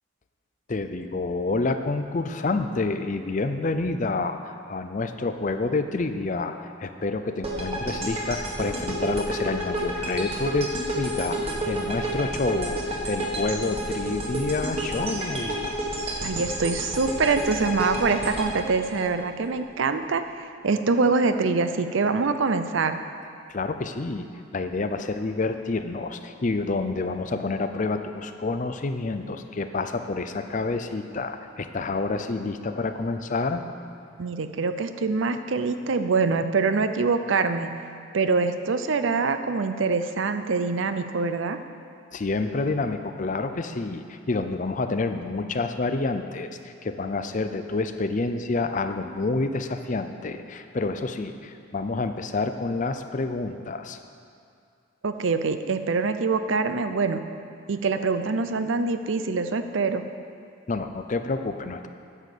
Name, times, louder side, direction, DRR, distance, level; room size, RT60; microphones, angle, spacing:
voice 1, 0.7-15.8 23.5-24.3 24.5-33.6 42.1-54.0 60.7-61.9, left 3 dB, 40° left, 8 dB, 0.5 m, -28 dB
sound 1, 7.4-19.6, right 1 dB, 30° right, 1.6 m, -30 dB
voice 2, 16.2-23.0 34.2-37.7 38.1-41.6 55.0-57.2 57.7-60.0, right 4 dB, 70° right, 9 dB, 0.5 m, -24 dB
9.8 x 7.2 x 6.7 m, 2.3 s
head